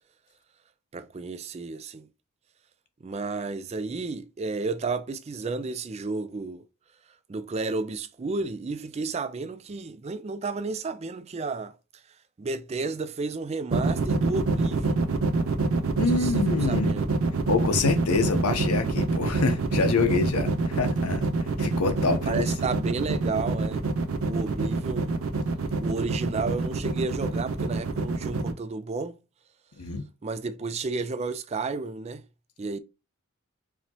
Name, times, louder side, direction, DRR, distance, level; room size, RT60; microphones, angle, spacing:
voice 1, 0.9-2.1 3.0-6.6 7.3-11.7 12.4-15.0 16.1-16.3 16.7-17.1 22.3-23.8 24.3-25.2 25.8-29.2 30.2-32.2 32.6-32.8, right 3 dB, 30° right, 0.3 m, -32 dB
sound 1, 13.7-28.5, right 3 dB, 65° right, 0.6 m, -26 dB
voice 2, 16.0-16.9 17.5-22.5 29.8-30.0, left 4 dB, 85° left, 0.9 m, -26 dB
4.8 x 2.9 x 2.8 m
head